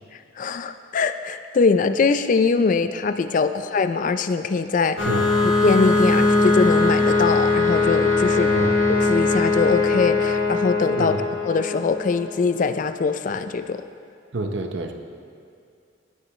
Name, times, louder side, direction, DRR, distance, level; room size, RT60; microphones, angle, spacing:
voice 1, 0.4-5.0 5.6-8.5 8.9-11.1 11.4-13.8, left 4 dB, 40° left, 10 dB, 0.3 m, -22 dB
sound 1, 5.0-12.3, left 3 dB, 85° left, 2.2 m, -20 dB
voice 2, 8.5-8.8 11.0-11.3 14.3-14.9, right 2 dB, 60° right, 5 dB, 0.7 m, -28 dB
16.5 x 6.7 x 3.1 m, 2.3 s
head